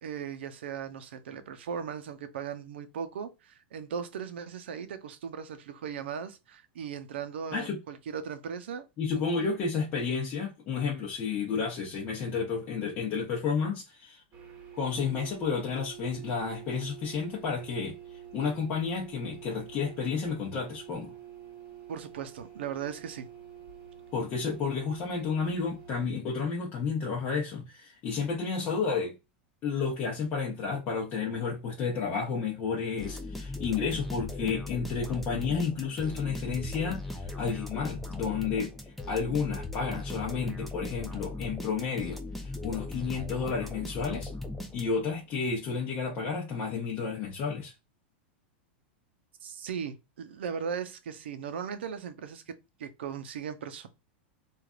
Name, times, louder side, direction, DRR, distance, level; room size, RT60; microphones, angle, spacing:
voice 1, 0.0-8.9 9.1-9.2 21.9-23.3 49.4-52.5 52.8-53.9, right 7 dB, 85° right, 0.6 m, -38 dB
voice 2, 9.0-14.2 14.7-18.0 18.3-21.1 24.1-29.1 29.6-38.7 39.1-44.3 44.7-47.7, left 5 dB, 35° left, 0.8 m, -31 dB
sound 1, 14.3-26.1, right 9 dB, 30° right, 1.0 m, -47 dB
sound 2, 33.0-45.2, left 2 dB, 5° left, 0.5 m, -38 dB
3.2 x 2.4 x 2.4 m
supercardioid pair, 140°, 6 cm